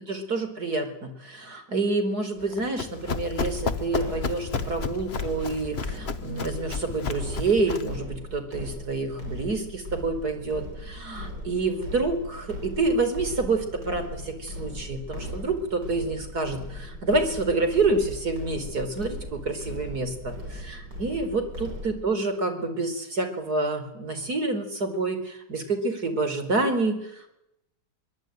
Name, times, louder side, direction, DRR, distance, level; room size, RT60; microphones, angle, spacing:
voice 1, 0.0-27.2, right 3 dB, 65° right, 8 dB, 4.9 m, -28 dB
Run, 2.4-8.0, left 5 dB, 40° left, 1.2 m, -33 dB
sound 1, 3.4-22.0, left 1 dB, 80° right, 6.9 m, -38 dB
24.0 x 23.5 x 9.2 m, 0.82 s
omnidirectional pair, 1.8 m